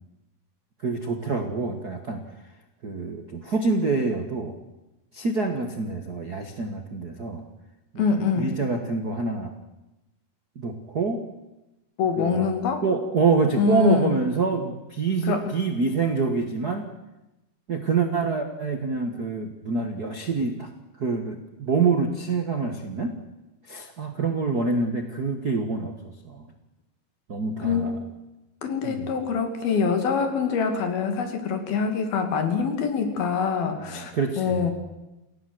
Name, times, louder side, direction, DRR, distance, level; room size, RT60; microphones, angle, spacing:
voice 1, 0.8-2.2 2.8-4.6 5.1-7.5 7.9-8.1 8.4-9.5 10.5-11.2 12.2-12.5 12.8-16.9 17.7-20.7 21.0-23.2 23.7-25.9 26.2-26.5 27.3-27.9 28.8-29.1 33.7-34.7, right 4 dB, 50° right, 4 dB, 1.1 m, -26 dB
voice 2, 8.0-8.5 12.0-12.8 13.6-14.1 15.2-15.5 27.6-28.0 28.6-34.7, left 6 dB, 80° left, 6 dB, 4.4 m, -24 dB
29.0 x 16.5 x 7.9 m, 0.98 s
omnidirectional pair, 4.2 m